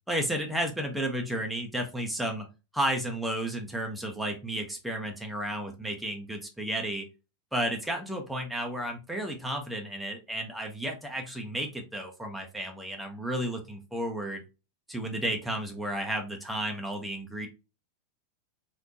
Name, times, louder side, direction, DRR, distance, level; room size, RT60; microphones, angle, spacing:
voice 1, 0.1-2.5 2.7-7.0 7.5-14.4 14.9-17.5, right 1 dB, ahead, 2 dB, 0.7 m, -32 dB
3.4 x 2.5 x 2.6 m, 0.29 s
figure-of-eight pair, 90°, 0 cm